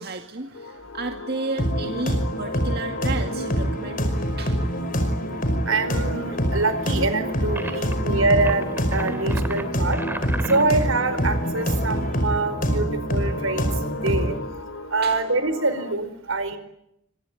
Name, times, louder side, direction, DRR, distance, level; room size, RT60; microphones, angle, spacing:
voice 1, 0.0-4.7 10.4-10.5 15.0-15.2, right 3 dB, 50° right, 4 dB, 2.1 m, -33 dB
sound 1, 0.5-15.9, left 2 dB, 85° left, 2.6 m, -36 dB
sound 2, 1.6-14.4, equal, 40° left, 5.3 m, -25 dB
voice 2, 5.7-10.0 10.5-13.7 14.0-14.4 14.9-16.6, right 3 dB, 80° right, 11 dB, 4.8 m, -25 dB
sound 3, 7.6-7.9 8.4-10.9, right 1 dB, 10° right, 2.5 m, -35 dB
26.0 x 25.0 x 9.2 m, 0.80 s
head